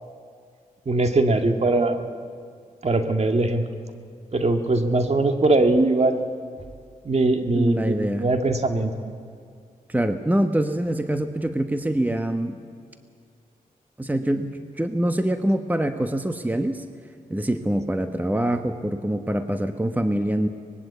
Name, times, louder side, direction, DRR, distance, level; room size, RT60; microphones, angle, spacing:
voice 1, 0.9-2.0 2.8-3.7 4.3-6.3 7.0-8.9, right 2 dB, 50° right, 6 dB, 1.9 m, -21 dB
voice 2, 7.5-8.3 9.9-12.6 14.0-16.8 17.3-20.5, right 1 dB, 10° right, 8 dB, 1.2 m, -24 dB
24.0 x 20.0 x 8.3 m, 2.2 s
cardioid pair, 55°, 15 cm